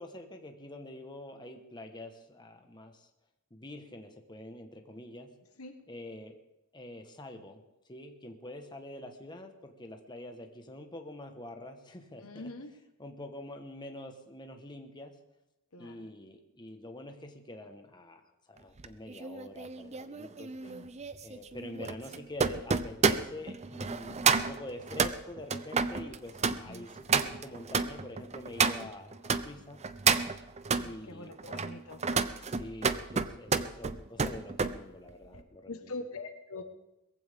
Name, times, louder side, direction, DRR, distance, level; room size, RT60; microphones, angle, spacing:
voice 1, 0.0-3.1 3.5-5.3 5.9-6.3 6.7-7.6 7.9-12.5 13.0-15.1 15.8-18.2 18.5-20.5 21.2-29.8 30.7-31.5 32.4-35.9, left 1 dB, 20° left, 5 dB, 1.3 m, -46 dB
voice 2, 12.2-12.7 15.7-16.1 20.6-20.9 26.7-26.9 30.8-32.0 35.3-36.6, left 2 dB, 85° left, 7 dB, 1.4 m, -44 dB
sound 1, 18.8-29.4 29.8-30.9 31.4-34.8 35.1-35.4, right 5 dB, 30° right, 0.6 m, -30 dB
21.0 x 15.0 x 3.6 m, 0.92 s
head